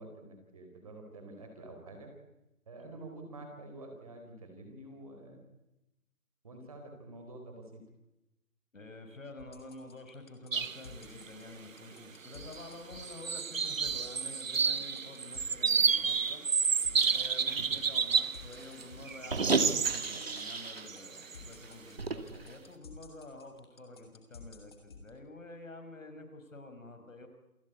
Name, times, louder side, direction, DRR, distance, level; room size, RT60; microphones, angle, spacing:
voice 1, 0.0-2.1 2.7-5.5 6.4-7.8, right 2 dB, 25° right, 4 dB, 4.1 m, -48 dB
voice 2, 8.7-16.4 17.1-27.3, left 2 dB, 60° left, 7 dB, 5.5 m, -49 dB
sound 1, 9.4-25.1, left 5 dB, 15° left, 2.0 m, -52 dB
sound 2, 10.5-10.8 11.2-11.3 12.2-12.7 12.9-18.4 18.8-21.5, right 6 dB, 60° right, 0.8 m, -30 dB
sound 3, 16.9-20.9 21.2-21.3 21.6-22.6, right 3 dB, 45° right, 2.3 m, -35 dB
28.5 x 18.0 x 8.5 m, 0.93 s
figure-of-eight pair, 170°, 44 cm